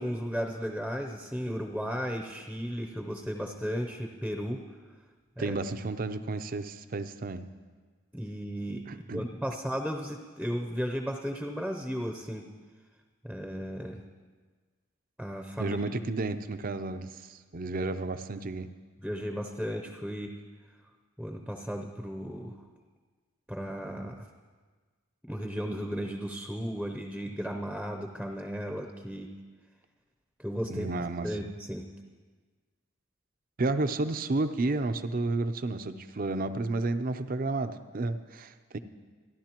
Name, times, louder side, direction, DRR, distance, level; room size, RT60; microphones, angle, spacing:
voice 1, 0.0-4.6 5.4-5.6 8.1-12.5 13.2-14.0 15.2-15.8 19.0-20.3 21.2-22.6 23.5-24.3 25.3-29.3 30.4-30.9 31.2-31.8, equal, ahead, 3 dB, 0.7 m, -35 dB
voice 2, 5.4-7.4 8.9-9.2 15.6-18.7 30.7-31.4 33.6-38.8, right 2 dB, 40° right, 10 dB, 0.6 m, -31 dB
28.0 x 11.0 x 3.0 m, 1.5 s
head